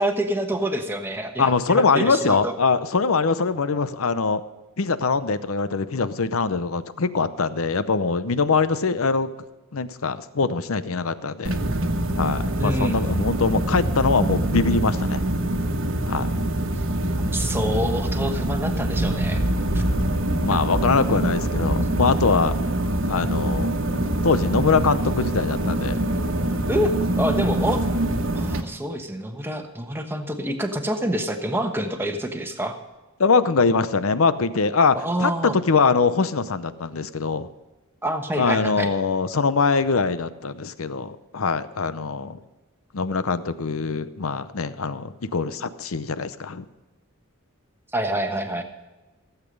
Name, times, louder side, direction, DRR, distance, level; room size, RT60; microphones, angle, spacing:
voice 1, 0.0-2.5 12.6-13.1 17.2-19.4 20.5-20.6 26.7-27.8 28.3-32.8 34.9-35.5 38.0-38.9 47.9-48.6, right 1 dB, 10° right, 5 dB, 1.1 m, -27 dB
voice 2, 1.4-4.4 4.8-9.3 9.7-11.6 12.2-15.2 16.1-16.3 20.3-22.6 23.1-23.7 24.2-26.1 33.2-35.3 35.7-37.5 38.4-42.4 42.9-46.6, left 4 dB, 70° left, 13 dB, 0.7 m, -23 dB
sound 1, 11.4-28.6, right 1 dB, 60° right, 1.3 m, -24 dB
15.5 x 8.3 x 5.3 m, 1.2 s
head